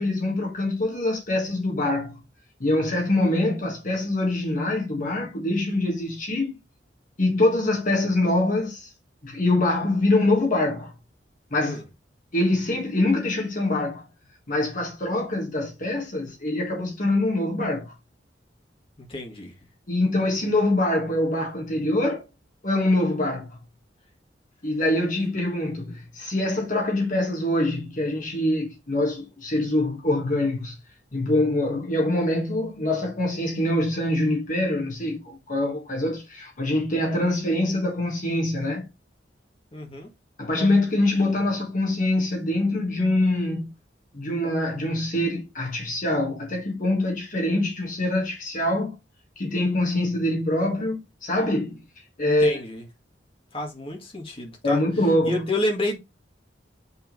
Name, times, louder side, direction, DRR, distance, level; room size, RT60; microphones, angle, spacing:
voice 1, 0.0-2.2 2.6-6.6 7.2-8.9 9.2-10.9 11.5-11.8 12.3-14.0 14.5-17.9 19.9-22.2 22.6-23.6 24.6-30.8 31.1-38.9 40.4-43.7 44.1-48.9 49.4-51.8 52.2-52.6 54.6-55.4, left 1 dB, 45° left, 1.6 m, -24 dB
voice 2, 19.0-19.5 39.7-40.1 52.2-52.8 53.5-54.8 55.2-56.0, left 1 dB, 30° left, 2.0 m, -29 dB
5.7 x 3.7 x 5.3 m
head